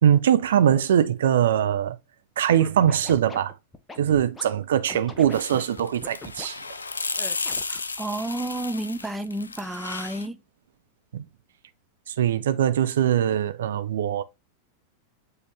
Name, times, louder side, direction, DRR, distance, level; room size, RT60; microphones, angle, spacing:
voice 1, 0.0-2.0 2.4-3.6 4.0-6.8 11.1-11.2 12.1-14.2, right 9 dB, 60° right, 0.6 m, -22 dB
Scratching (performance technique), 2.5-4.4 4.9-6.5 7.2-7.8, left 2 dB, 10° left, 1.0 m, -40 dB
sound 1, 5.3-10.3, left 4 dB, 75° left, 0.5 m, -33 dB
voice 2, 7.7-10.4, right 1 dB, 5° right, 0.6 m, -31 dB
7.7 x 4.0 x 3.4 m
figure-of-eight pair, 90°, 0 cm